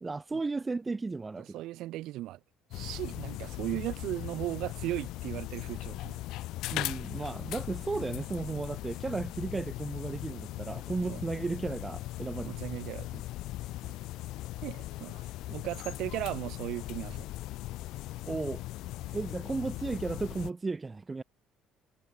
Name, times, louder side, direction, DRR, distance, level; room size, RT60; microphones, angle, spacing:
voice 1, 0.0-1.6 6.7-12.6 18.3-18.6 19.1-21.2, right 3 dB, 20° right, 1.0 m, -34 dB
voice 2, 1.4-2.4 2.7-6.2 11.1-11.2 12.4-13.2 14.6-15.2 15.5-17.3, right 16 dB, 70° right, 4.8 m, -37 dB
sound 1, 2.7-20.5, left 16 dB, 75° left, 3.3 m, -39 dB
cardioid pair, 120°, 0 cm